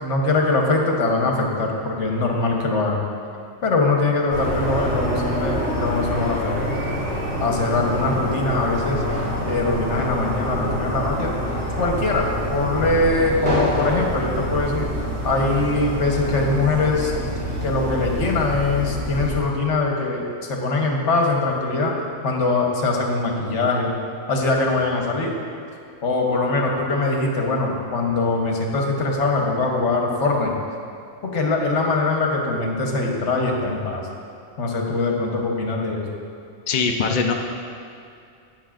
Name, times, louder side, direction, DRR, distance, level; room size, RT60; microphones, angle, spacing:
voice 1, 0.0-3.0 3.6-6.7 7.4-9.0 9.5-11.3 11.8-14.9 15.2-17.1 17.6-21.9 22.2-24.0 24.3-25.3 26.0-30.6 31.2-34.1 34.6-36.2, left 3 dB, 70° left, 0 dB, 1.4 m, -22 dB
sound 1, 4.3-19.4, equal, 60° right, 2.9 m, -26 dB
voice 2, 36.7-37.3, left 5 dB, 50° left, 2 dB, 0.6 m, -21 dB
12.0 x 9.1 x 2.5 m, 2.4 s
omnidirectional pair, 1.3 m